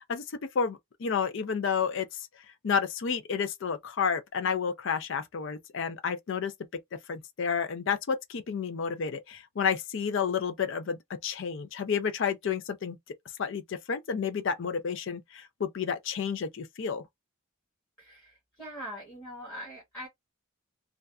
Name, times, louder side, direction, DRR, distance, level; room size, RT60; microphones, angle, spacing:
voice 1, 0.5-2.1 2.6-6.5 7.1-13.0 13.4-17.0, left 6 dB, 55° left, 0.4 m, -30 dB
voice 2, 18.0-20.1, equal, 10° left, 1.0 m, -42 dB
2.5 x 2.2 x 2.2 m
head